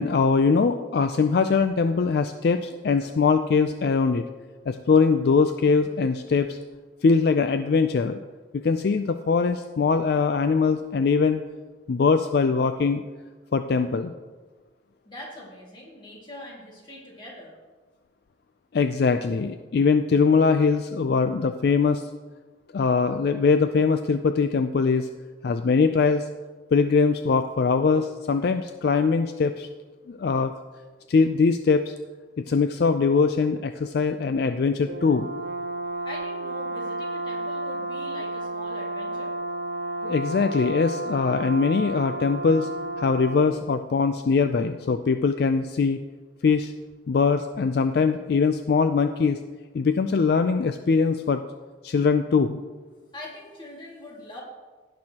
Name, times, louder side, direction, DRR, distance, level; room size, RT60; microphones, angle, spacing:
voice 1, 0.0-4.2 4.7-6.6 7.0-8.2 8.5-11.4 11.9-13.0 13.5-14.1 18.7-22.1 22.7-25.1 25.4-26.3 26.7-29.7 30.1-30.5 31.1-31.9 32.4-35.3 40.0-42.7 43.0-46.0 46.4-46.7 47.1-49.4 49.7-51.4 51.8-52.6, left 5 dB, 55° left, 8 dB, 0.3 m, -22 dB
voice 2, 15.0-17.5 36.0-39.3 53.1-54.4, left 1 dB, 25° left, -4 dB, 2.1 m, -42 dB
Brass instrument, 34.9-43.6, right 2 dB, 70° right, 0.6 m, -32 dB
17.0 x 6.2 x 2.9 m, 1.4 s
head